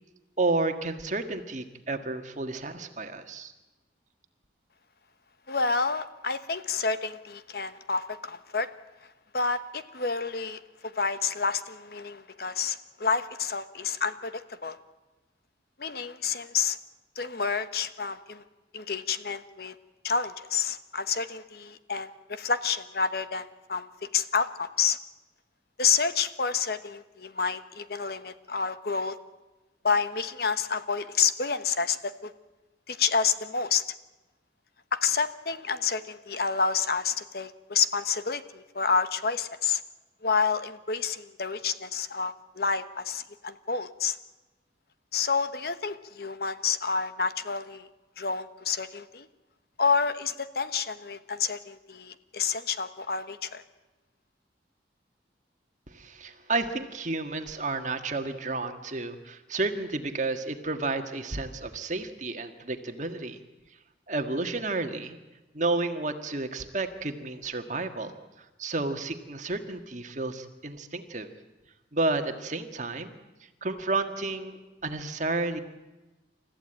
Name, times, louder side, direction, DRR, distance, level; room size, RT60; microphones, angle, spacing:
voice 1, 0.4-3.5 55.9-63.4 64.1-65.2 65.5-71.3 71.9-73.2 73.6-75.6, right 3 dB, 40° right, 7 dB, 1.7 m, -31 dB
voice 2, 5.5-8.7 9.3-14.8 15.8-16.8 17.2-18.4 18.7-19.7 20.0-25.0 25.8-29.2 29.8-32.3 32.9-33.8 34.9-39.8 40.2-44.2 45.1-47.9 48.2-49.3 49.8-53.6, left 5 dB, 55° left, 11 dB, 1.1 m, -29 dB
29.0 x 14.5 x 8.9 m, 1.1 s
head